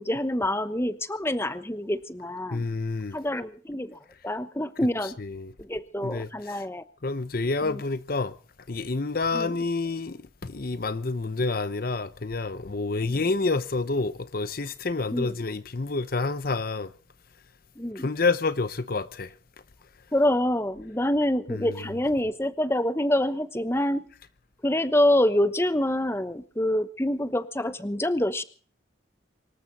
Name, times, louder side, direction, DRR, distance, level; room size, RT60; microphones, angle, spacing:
voice 1, 0.0-2.6 3.1-5.2 5.6-6.8 7.6-7.8 9.3-9.6 15.1-15.3 17.8-18.1 20.1-24.1 24.6-28.4, left 1 dB, 15° left, 1.0 m, -26 dB
voice 2, 2.5-3.2 5.2-5.5 6.0-6.6 7.0-8.3 8.7-16.9 18.0-19.3 21.5-21.7, left 3 dB, 50° left, 0.7 m, -28 dB
25.0 x 13.5 x 4.1 m
head